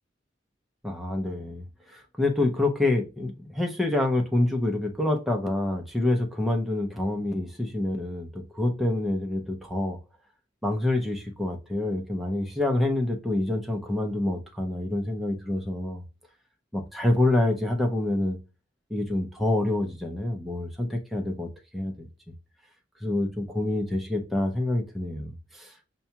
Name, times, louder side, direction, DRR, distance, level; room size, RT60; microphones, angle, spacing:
voice 1, 0.8-10.0 10.6-16.0 16.7-18.4 18.9-22.1 23.0-25.9, left 1 dB, ahead, 0.5 m, -27 dB
5.5 x 2.2 x 2.8 m
head